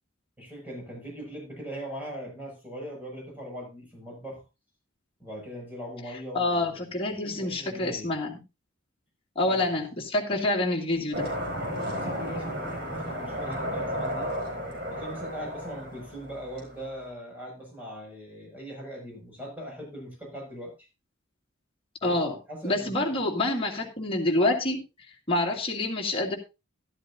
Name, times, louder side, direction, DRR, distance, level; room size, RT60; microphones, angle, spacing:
voice 1, 0.4-4.4 5.2-6.8 7.1-8.1 9.4-9.7 11.8-14.3 14.9-20.9 22.0-22.2 22.5-23.1, equal, 10° right, -2 dB, 6.4 m, -40 dB
voice 2, 6.3-8.4 9.4-11.3 22.0-22.4 22.6-24.8 25.3-26.4, left 2 dB, 30° left, -3 dB, 2.4 m, -27 dB
sound 1, 11.1-17.1, equal, 50° right, 4.4 m, -33 dB
13.0 x 12.0 x 2.7 m, 0.28 s
head